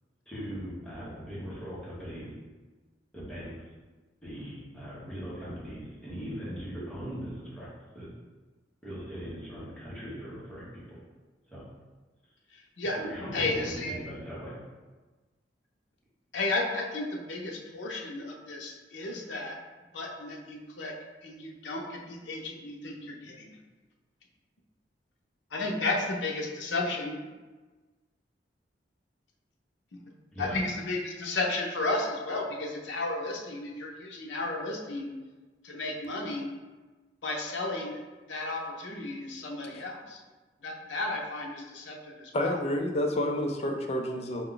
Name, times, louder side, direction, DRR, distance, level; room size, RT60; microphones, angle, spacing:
voice 1, 0.3-2.3 3.1-3.5 4.2-7.7 7.9-8.1 8.8-11.0 11.5-11.6 13.0-14.6 30.3-30.6, equal, 5° left, -9 dB, 1.0 m, -39 dB
voice 2, 12.5-13.0 13.3-13.9 16.3-19.6 19.9-20.9 21.2-23.5 25.5-27.1 30.4-35.1 35.6-36.5 37.2-38.0 38.3-40.2 40.6-42.6, left 2 dB, 90° left, 0 dB, 0.6 m, -33 dB
voice 3, 42.3-44.4, left 1 dB, 35° left, 2 dB, 0.5 m, -29 dB
4.7 x 2.2 x 3.8 m, 1.3 s
head